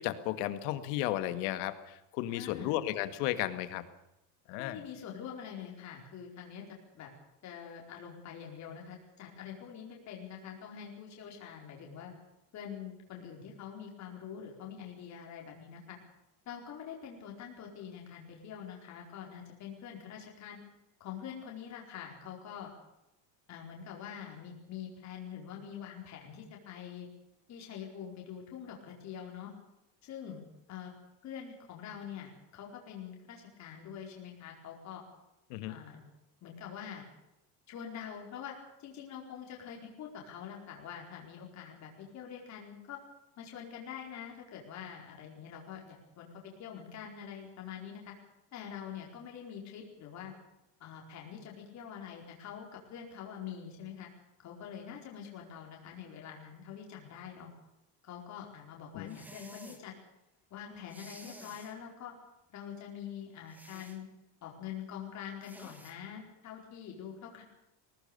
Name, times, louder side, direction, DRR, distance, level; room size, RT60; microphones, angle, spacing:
voice 1, 0.0-3.8 4.5-4.8 35.5-35.8 58.9-59.2, left 14 dB, 70° left, 11 dB, 2.1 m, -34 dB
voice 2, 2.3-2.8 4.6-6.6 6.9-7.1 7.4-12.1 12.5-16.0 16.5-20.6 21.0-22.7 23.5-27.1 27.5-29.5 30.0-30.4 30.7-30.9 31.2-35.0 35.7-36.0 36.4-37.1 37.7-43.0 43.4-48.1 48.5-50.3 50.8-54.1 54.4-57.5 58.0-59.9 60.5-62.1 62.5-64.0 64.4-67.4, left 8 dB, 35° left, -1 dB, 4.7 m, -45 dB
sound 1, 59.1-59.8 60.9-61.8 63.5-64.0 65.4-66.0, right 1 dB, 5° right, 1.7 m, -52 dB
21.5 x 18.0 x 6.9 m, 0.88 s
cardioid pair, 175°, 48 cm